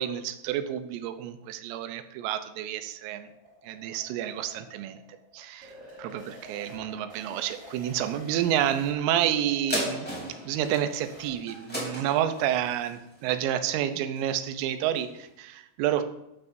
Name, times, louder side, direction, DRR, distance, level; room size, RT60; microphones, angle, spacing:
voice 1, 0.0-3.3 3.6-5.0 5.3-5.7 6.0-10.1 10.5-16.0, right 11 dB, 85° right, 9 dB, 3.4 m, -29 dB
sound 1, 2.5-11.3, equal, 20° right, 3.8 m, -49 dB
sound 2, 9.7-14.5 14.9-15.0, equal, 5° left, 2.3 m, -36 dB
13.0 x 12.0 x 2.7 m, 0.89 s
omnidirectional pair, 5.7 m